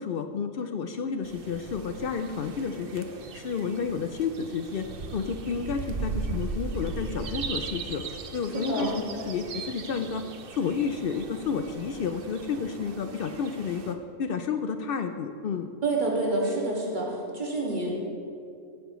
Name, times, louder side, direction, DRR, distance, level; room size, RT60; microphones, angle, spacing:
voice 1, 0.0-3.1 3.3-8.0 8.3-10.3 10.5-15.7, left 6 dB, 65° left, 7 dB, 0.6 m, -31 dB
sound 1, 1.2-13.9, right 4 dB, 55° right, 0.8 m, -38 dB
voice 2, 8.5-8.9 15.8-17.1 17.3-17.9, right 2 dB, 35° right, -3 dB, 2.0 m, -27 dB
15.5 x 8.6 x 3.1 m, 2.4 s
omnidirectional pair, 1.3 m